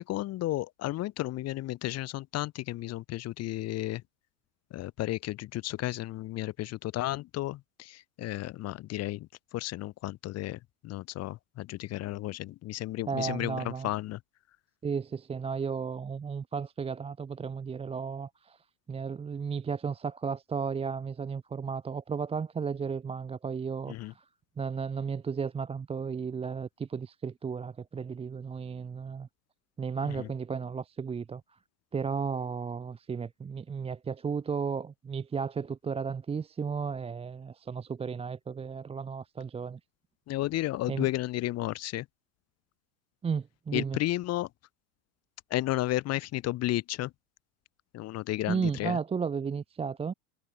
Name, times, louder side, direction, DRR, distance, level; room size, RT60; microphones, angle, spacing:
voice 1, 0.0-4.0 4.7-14.2 23.9-24.1 30.0-30.3 40.3-42.1 43.7-44.5 45.5-47.1 47.9-49.0, left 16 dB, 35° left, 1.0 m, -33 dB
voice 2, 13.1-13.9 14.8-24.3 24.6-29.3 29.8-31.4 31.9-39.8 40.9-41.1 43.2-44.0 48.5-50.1, right 6 dB, 15° right, 0.8 m, -34 dB
supercardioid pair, 120°, 45 cm